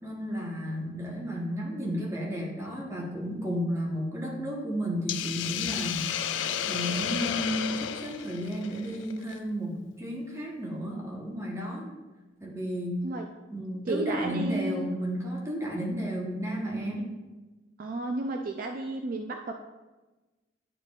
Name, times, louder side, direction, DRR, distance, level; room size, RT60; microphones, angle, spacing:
voice 1, 0.0-6.2 6.7-11.9 12.4-13.0 13.5-17.1, equal, 15° right, -2 dB, 1.1 m, -33 dB
Hiss, 5.1-9.4, left 9 dB, 80° left, 0.3 m, -32 dB
voice 2, 13.9-14.9 17.8-19.5, right 2 dB, 50° right, 4 dB, 0.3 m, -32 dB
10.0 x 4.3 x 2.4 m, 1.2 s
head